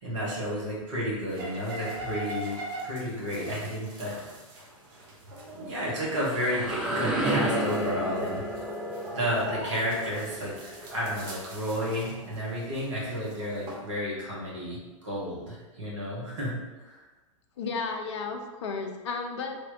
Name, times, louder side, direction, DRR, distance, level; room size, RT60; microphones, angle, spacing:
voice 1, 0.0-2.6 2.8-4.2 5.4-8.4 9.1-10.5 10.8-17.0, equal, 65° right, -6 dB, 1.5 m, -32 dB
sound 1, 1.3-13.8, right 2 dB, 45° right, 1.0 m, -42 dB
sound 2, 6.1-11.7, right 1 dB, 5° right, 0.6 m, -32 dB
voice 2, 17.6-19.6, left 4 dB, 55° left, 4 dB, 0.5 m, -33 dB
3.4 x 3.0 x 2.7 m, 1.2 s
figure-of-eight pair, 100°, 17 cm